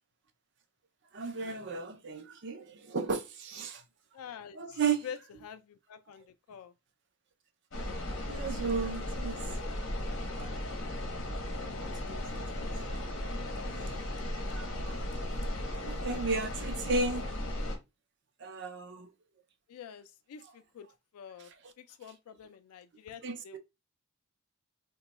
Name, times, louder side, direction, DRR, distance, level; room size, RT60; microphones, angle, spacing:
voice 1, 1.1-3.8 4.6-5.1 7.8-9.5 10.0-10.7 11.8-12.7 14.3-15.0 15.5-17.3 18.4-19.1 23.2-23.4, right 4 dB, 55° right, 0.5 m, -35 dB
voice 2, 4.1-6.7 19.7-21.5 21.8-23.6, left 8 dB, 85° left, 0.3 m, -47 dB
sound 1, 7.7-17.8, left 1 dB, 55° left, 0.9 m, -36 dB
3.0 x 2.2 x 4.0 m
head